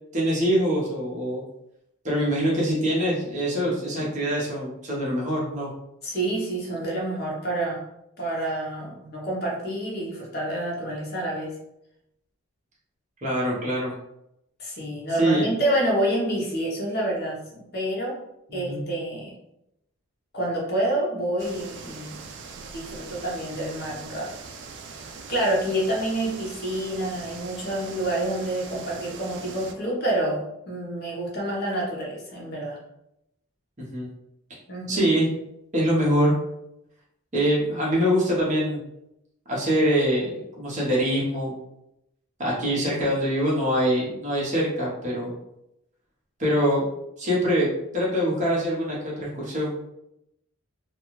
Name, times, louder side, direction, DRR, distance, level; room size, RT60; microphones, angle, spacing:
voice 1, 0.1-1.4 2.0-5.7 13.2-13.9 15.2-15.4 18.5-18.8 33.8-34.1 34.9-35.3 35.7-36.4 37.3-38.8 39.5-41.5 42.4-45.3 46.4-46.8 47.2-49.9, equal, 35° right, -5 dB, 0.8 m, -24 dB
voice 2, 6.0-7.8 8.2-11.5 14.6-18.1 18.5-19.3 20.3-22.2 22.7-24.4 25.3-32.8 34.7-35.1, right 1 dB, 45° left, -3 dB, 0.8 m, -28 dB
sound 1, 21.4-29.7, right 5 dB, 55° right, 0.3 m, -41 dB
2.4 x 2.3 x 3.0 m, 0.82 s
head